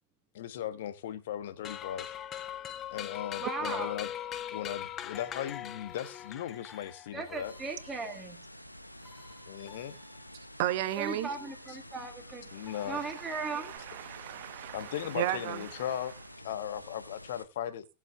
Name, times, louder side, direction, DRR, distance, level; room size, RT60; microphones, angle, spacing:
voice 1, 0.3-2.1 2.9-4.1 4.5-7.5 9.5-9.9 12.5-13.0 14.7-17.9, left 10 dB, 55° left, 1.2 m, -37 dB
sound 1, 1.6-7.2, left 11 dB, 30° left, 0.7 m, -40 dB
voice 2, 3.4-4.0 7.1-8.5 11.0-12.5 12.8-13.7, right 4 dB, 15° right, 1.5 m, -37 dB
sound 2, 4.8-13.8, left 4 dB, 15° left, 2.2 m, -58 dB
sound 3, 7.4-17.4, left 1 dB, 90° left, 0.7 m, -50 dB
voice 3, 10.6-11.3 12.6-12.9 13.2-15.9, right 14 dB, 50° right, 1.1 m, -35 dB
19.5 x 7.3 x 2.4 m
figure-of-eight pair, 90°, 0 cm